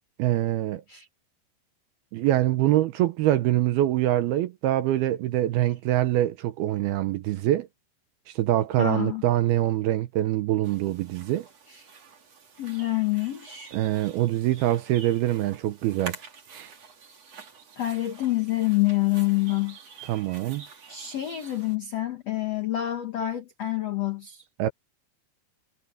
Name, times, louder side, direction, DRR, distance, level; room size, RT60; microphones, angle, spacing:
voice 1, 0.2-0.8 2.1-7.7 8.3-11.5 13.7-16.2 16.5-16.7 20.1-20.6 24.6-24.7, right 14 dB, 75° right, 2.5 m, -24 dB
voice 2, 8.8-9.2 11.7-11.8 12.6-13.8 17.8-19.8 20.9-24.4, left 16 dB, 80° left, 1.4 m, -27 dB
sound 1, 10.6-21.8, right 5 dB, 40° right, 3.8 m, -47 dB
omnidirectional pair, 5.1 m